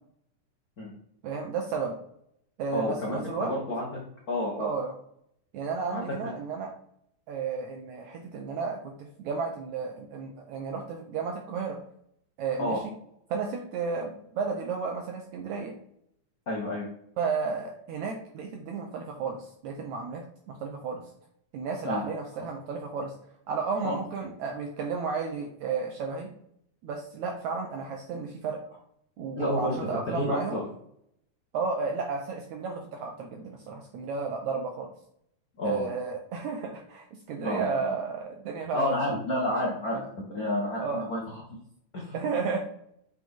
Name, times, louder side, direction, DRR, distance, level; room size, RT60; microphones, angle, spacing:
voice 1, 1.2-2.0 2.6-3.5 4.6-4.9 5.5-6.7 7.3-11.8 12.4-12.9 13.3-15.7 17.2-21.0 21.5-23.1 23.5-26.3 26.8-28.6 29.2-30.6 31.5-34.9 35.6-39.0 39.9-40.1 40.8-41.1 42.1-42.6, right 5 dB, 75° right, 2 dB, 1.8 m, -33 dB
voice 2, 2.7-3.9 4.3-4.7 5.9-6.0 12.6-12.8 16.5-16.9 21.8-22.1 23.8-24.0 29.4-29.8 30.1-30.6 35.6-35.9 37.4-37.9 38.7-40.0 40.3-41.3 41.9-42.2, left 1 dB, 85° left, -3 dB, 0.8 m, -30 dB
7.6 x 4.1 x 3.7 m, 0.70 s
omnidirectional pair, 3.9 m